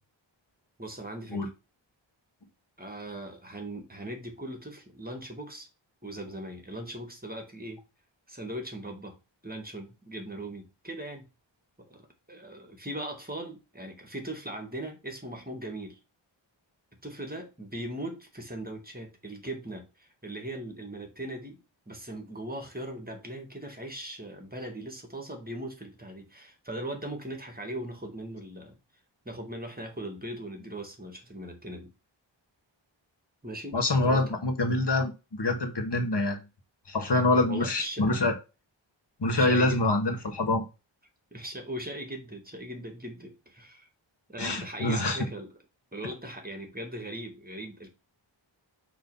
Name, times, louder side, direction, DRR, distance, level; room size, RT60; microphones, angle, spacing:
voice 1, 0.8-1.5 2.8-5.7 6.0-7.8 8.3-9.2 9.4-11.3 11.8-16.0 17.0-21.6 21.9-28.8 29.2-31.9 33.4-33.8 34.0-34.2 37.5-38.0 39.3-39.8 41.3-43.9 44.3-45.5 45.9-47.9, right 1 dB, 20° right, 1.7 m, -39 dB
voice 2, 33.7-36.4 36.9-38.4 39.2-40.7 44.4-45.2, left 2 dB, 60° left, 1.5 m, -26 dB
6.1 x 3.2 x 5.4 m
wide cardioid pair, 60°, 47 cm